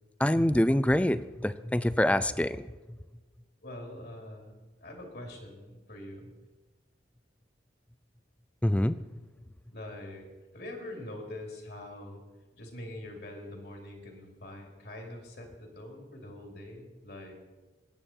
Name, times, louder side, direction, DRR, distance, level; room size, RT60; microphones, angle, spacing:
voice 1, 0.2-2.7 8.6-9.0, left 1 dB, 5° left, 15 dB, 0.4 m, -25 dB
voice 2, 3.6-6.3 9.7-12.2 12.6-17.3, left 1 dB, 65° left, 2 dB, 3.0 m, -44 dB
21.5 x 9.0 x 4.4 m, 1.2 s
head